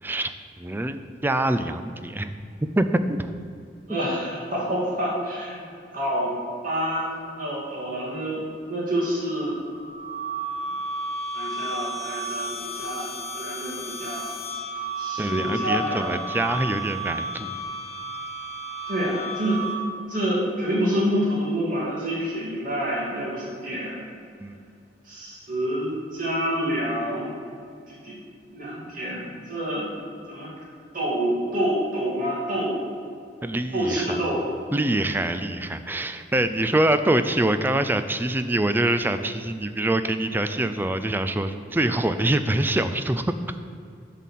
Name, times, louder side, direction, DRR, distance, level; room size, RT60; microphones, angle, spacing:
voice 1, 0.0-2.3 2.8-3.3 15.2-17.5 24.4-24.6 33.4-34.2 34.7-43.3, right 1 dB, 10° right, 10 dB, 0.4 m, -25 dB
voice 2, 3.9-6.3 6.6-9.6 11.3-14.3 15.0-16.1 18.9-19.6 20.1-24.0 25.1-27.3 28.0-28.2 28.5-29.9 30.3-30.5 30.9-32.7 33.7-34.5, equal, 50° right, -5 dB, 2.6 m, -27 dB
sound 1, 9.7-20.1, right 2 dB, 35° left, 0.8 m, -33 dB
11.0 x 4.2 x 7.4 m, 2.4 s
head